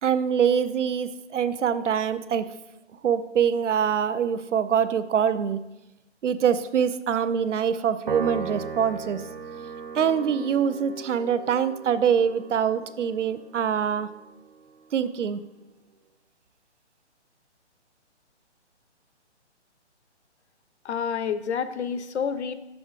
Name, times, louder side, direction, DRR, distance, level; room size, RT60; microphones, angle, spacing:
voice 1, 0.0-2.5 3.0-5.6 6.2-9.2 9.9-14.1 14.9-15.4, right 7 dB, 85° right, 13 dB, 0.7 m, -24 dB
Piano, 8.1-14.6, right 5 dB, 45° right, 0.5 m, -37 dB
voice 2, 20.8-22.5, left 7 dB, 70° left, 11 dB, 0.8 m, -28 dB
6.1 x 5.8 x 5.1 m, 0.97 s
hypercardioid pair, 170°, 35 cm